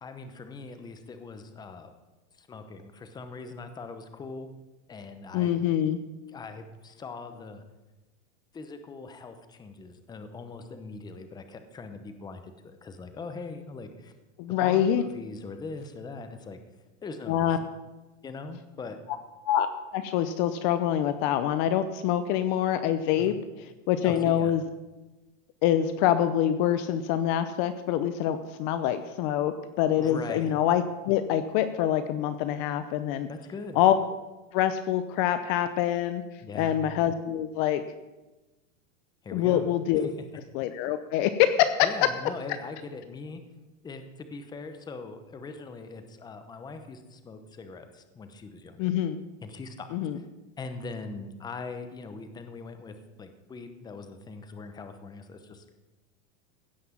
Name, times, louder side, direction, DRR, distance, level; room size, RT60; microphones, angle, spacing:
voice 1, 0.0-1.9 2.4-4.5 4.9-5.5 6.3-7.6 8.5-14.1 14.5-16.6 17.0-17.7 18.2-19.0 23.2-23.4 24.0-24.5 30.0-30.5 33.3-33.8 36.4-36.8 39.2-39.7 39.9-40.1 41.8-43.4 43.8-48.9 49.4-49.9 50.1-50.2 50.6-55.7, left 4 dB, 10° left, 8 dB, 0.8 m, -41 dB
voice 2, 5.3-6.0 14.4-15.0 17.3-17.6 19.4-19.7 19.9-23.4 23.9-24.6 25.6-33.3 33.8-33.9 34.5-36.2 36.5-37.8 39.3-40.1 40.5-42.1 48.8-49.2 49.9-50.2, left 11 dB, 40° left, 11 dB, 0.7 m, -25 dB
16.0 x 5.9 x 7.3 m, 1.1 s
supercardioid pair, 150°, 37 cm